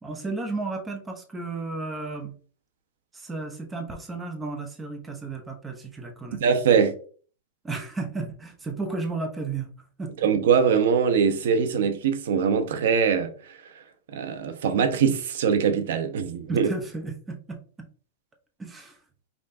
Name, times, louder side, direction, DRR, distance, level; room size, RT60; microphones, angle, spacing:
voice 1, 0.0-2.4 3.1-6.4 7.6-9.7 10.0-10.1 16.5-17.6 18.6-19.0, right 3 dB, 10° right, 0.8 m, -33 dB
voice 2, 6.3-6.9 10.2-13.3 14.1-16.7, right 6 dB, 70° right, 0.8 m, -22 dB
5.5 x 3.2 x 2.6 m
supercardioid pair, 155°, 0 cm